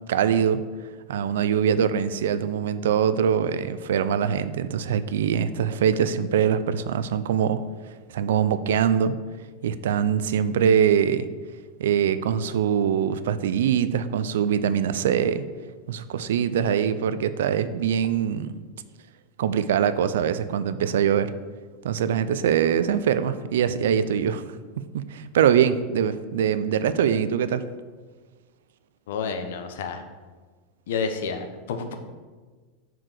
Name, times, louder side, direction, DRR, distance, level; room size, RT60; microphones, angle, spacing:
voice 1, 0.1-0.6 1.1-7.6 8.1-9.2 9.6-11.3 11.8-15.5 15.9-18.5 19.4-21.3 21.8-24.4 24.8-27.6, right 8 dB, 85° right, 13 dB, 0.5 m, -23 dB
voice 2, 29.1-30.0 30.9-31.9, left 5 dB, 80° left, 6 dB, 1.0 m, -29 dB
6.1 x 4.6 x 6.6 m, 1.4 s
supercardioid pair, 140°, 0 cm